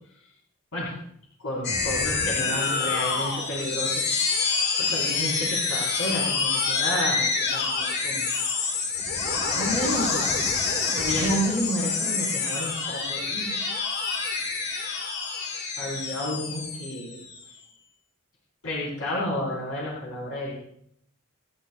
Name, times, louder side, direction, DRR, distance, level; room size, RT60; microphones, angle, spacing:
voice 1, 1.4-4.1 4.4-8.2 8.6-8.8 9.3-10.3 11.0-13.5 14.5-14.6 15.8-17.2 18.6-20.5, equal, 80° left, -7 dB, 4.7 m, -31 dB
sound 1, 1.6-17.5, left 4 dB, 50° left, 2.1 m, -27 dB
29.0 x 11.5 x 2.5 m, 0.68 s
head